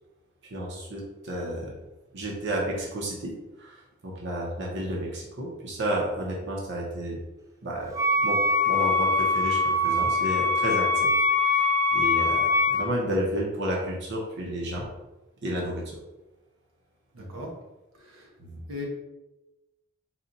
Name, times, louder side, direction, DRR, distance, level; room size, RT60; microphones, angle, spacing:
voice 1, 0.4-1.7 2.1-3.3 3.6-7.2 7.6-7.9 8.2-8.4 8.6-11.1 11.5-14.9 15.4-16.0 17.2-17.3 18.4-18.6, right 1 dB, 60° right, -2 dB, 0.9 m, -31 dB
Wind instrument woodwind instrument, 7.9-12.9, left 3 dB, 15° right, 0.4 m, -23 dB
voice 2, 17.1-17.5 18.0-18.3 18.7-18.8, left 2 dB, 85° right, -2 dB, 0.9 m, -38 dB
4.2 x 2.4 x 4.0 m, 1.0 s
head